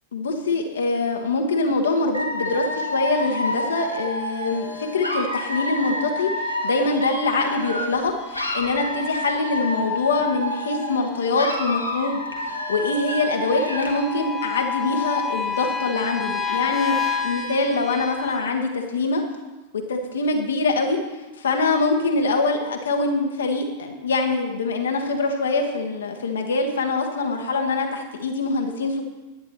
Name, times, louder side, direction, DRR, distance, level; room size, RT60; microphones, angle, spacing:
voice 1, 0.1-19.2 19.9-21.0 21.4-29.0, left 3 dB, 65° left, 3 dB, 1.3 m, -24 dB
Dog / Alarm, 2.1-8.0 8.3-11.0 11.3-14.1, left 1 dB, 85° left, 1.5 m, -29 dB
sound 1, 3.0-18.4, left 5 dB, 5° left, 1.7 m, -33 dB
10.5 x 9.3 x 4.4 m, 1.1 s
figure-of-eight pair, 90°, 0 cm